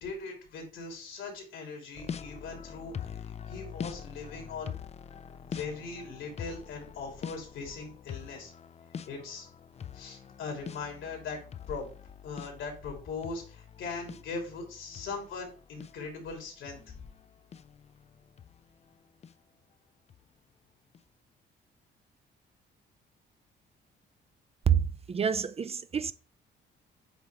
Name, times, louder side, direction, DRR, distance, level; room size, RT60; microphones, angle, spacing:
voice 1, 0.0-3.2 3.5-4.7 5.5-8.5 9.1-9.5 9.9-11.4 11.7-11.9 12.2-16.8, left 4 dB, 80° left, 2.8 m, -40 dB
sound 1, 1.9-18.9 19.2-19.3 20.1-20.2 20.9-21.0, left 7 dB, 35° left, 0.4 m, -44 dB
voice 2, 24.7-26.1, right 8 dB, 30° right, 0.4 m, -27 dB
8.1 x 3.1 x 4.6 m
cardioid pair, 90°, 20 cm